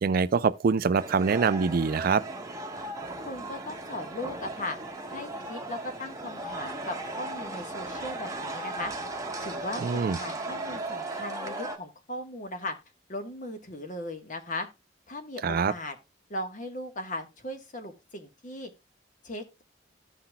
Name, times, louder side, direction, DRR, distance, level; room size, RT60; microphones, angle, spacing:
voice 1, 0.0-2.2 9.8-10.2 15.4-15.7, right 5 dB, 50° right, 0.4 m, -24 dB
sound 1, 1.0-11.8, right 2 dB, 15° right, 1.1 m, -37 dB
voice 2, 3.2-4.8 5.1-12.8 13.1-14.7 15.1-16.0 16.3-18.7 19.2-19.6, left 1 dB, 40° left, 1.4 m, -38 dB
15.5 x 5.7 x 2.3 m
head